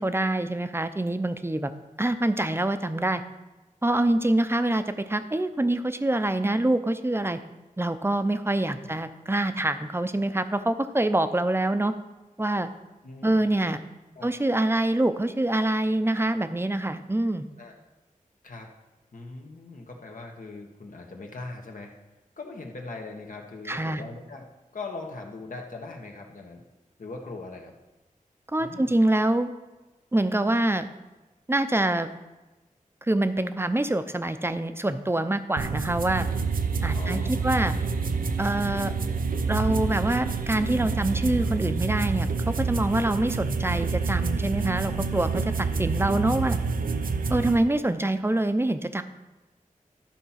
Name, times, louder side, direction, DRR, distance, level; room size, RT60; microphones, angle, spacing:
voice 1, 0.0-1.7 2.0-3.2 3.8-7.4 7.8-11.9 12.4-12.7 13.2-13.8 14.2-17.5 23.7-24.0 28.5-29.5 30.1-30.9 31.5-32.1 33.1-36.3 36.8-37.7 38.4-38.9 39.5-46.6 47.3-49.0, right 1 dB, 15° right, 10 dB, 0.6 m, -25 dB
voice 2, 13.0-13.4 14.1-14.3 17.6-17.8 18.4-18.7 19.1-21.9 22.4-24.5 24.7-26.6 27.0-27.7 28.6-28.9 36.9-37.7, left 3 dB, 70° left, 2 dB, 1.5 m, -40 dB
sound 1, 35.6-47.6, right 4 dB, 90° right, 0.6 m, -28 dB
12.0 x 4.5 x 5.8 m, 1.1 s
wide cardioid pair, 55°, 14 cm